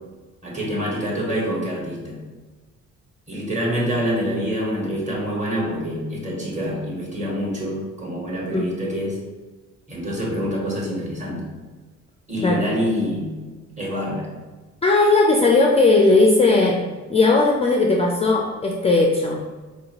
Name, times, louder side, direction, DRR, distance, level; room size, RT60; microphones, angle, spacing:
voice 1, 0.4-2.2 3.3-9.2 9.9-11.4 12.3-13.4 13.8-14.3, equal, 25° right, -3 dB, 1.3 m, -26 dB
voice 2, 14.8-16.8 17.1-19.4, left 3 dB, 20° left, 0 dB, 0.3 m, -17 dB
4.2 x 2.7 x 2.9 m, 1.3 s
cardioid pair, 90°, 30 cm